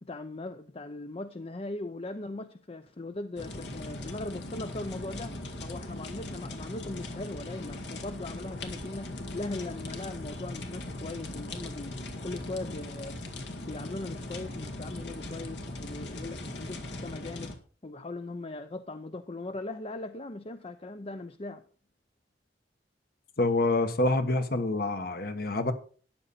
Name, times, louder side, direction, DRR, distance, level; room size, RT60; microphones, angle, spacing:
voice 1, 0.0-12.0 12.2-13.1 13.7-17.6 17.8-21.6, left 2 dB, 35° left, 0.6 m, -39 dB
sound 1, 3.4-17.6, left 1 dB, 75° left, 2.0 m, -39 dB
voice 2, 23.4-25.7, left 2 dB, 55° left, 1.3 m, -27 dB
13.0 x 9.9 x 4.2 m
head